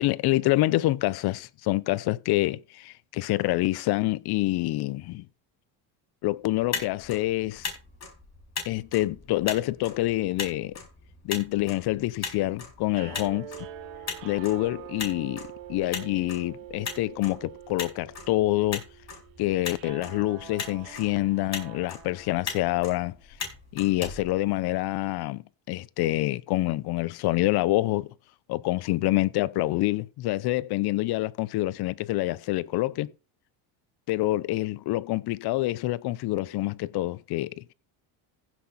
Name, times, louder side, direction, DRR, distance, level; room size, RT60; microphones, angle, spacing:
voice 1, 0.0-5.2 6.2-7.7 8.6-10.7 11.2-13.5 14.2-18.8 19.4-23.1 23.7-28.1 28.5-33.1 34.1-37.7, left 17 dB, 55° left, 0.7 m, -27 dB
Motor vehicle (road), 6.5-25.1, left 5 dB, 35° left, 5.0 m, -39 dB
sound 1, 12.9-23.1, right 11 dB, 75° right, 3.0 m, -45 dB
15.5 x 6.2 x 4.2 m
cardioid pair, 120°, 47 cm